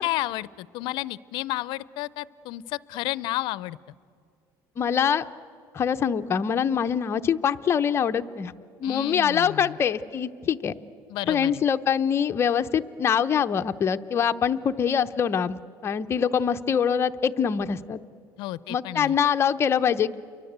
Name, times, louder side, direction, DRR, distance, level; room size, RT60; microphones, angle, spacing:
voice 1, 0.0-3.8 8.8-9.8 11.1-11.6 18.4-19.2, left 17 dB, 65° left, 19 dB, 0.6 m, -32 dB
voice 2, 4.8-5.2 5.7-8.5 8.8-10.8 11.3-18.0 18.7-20.2, left 7 dB, 30° left, 9 dB, 0.7 m, -24 dB
29.5 x 23.5 x 8.1 m, 2.4 s
cardioid pair, 145°, 8 cm